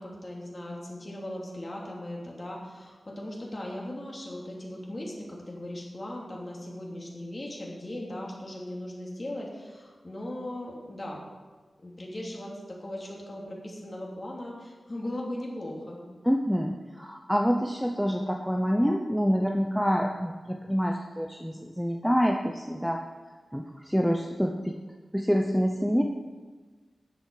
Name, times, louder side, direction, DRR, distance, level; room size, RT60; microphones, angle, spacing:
voice 1, 0.0-11.2 11.8-16.0, left 1 dB, 30° left, -3 dB, 3.1 m, -38 dB
voice 2, 16.2-23.0 23.5-24.7 25.1-26.0, equal, ahead, 1 dB, 0.7 m, -26 dB
13.0 x 10.0 x 4.9 m, 1.4 s
wide cardioid pair, 135°, 0 cm